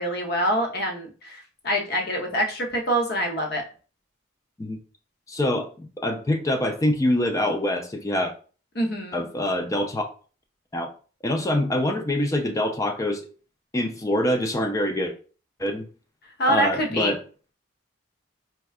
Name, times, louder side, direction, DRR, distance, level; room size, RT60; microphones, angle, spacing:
voice 1, 0.0-3.6 8.8-9.2 16.4-17.1, equal, 50° left, 2 dB, 0.7 m, -25 dB
voice 2, 5.3-8.3 9.1-10.1 10.7-10.9 11.2-13.2 13.7-15.1 15.6-15.9 16.5-17.2, left 1 dB, 15° left, 4 dB, 0.3 m, -25 dB
4.3 x 2.2 x 2.3 m, 0.38 s
head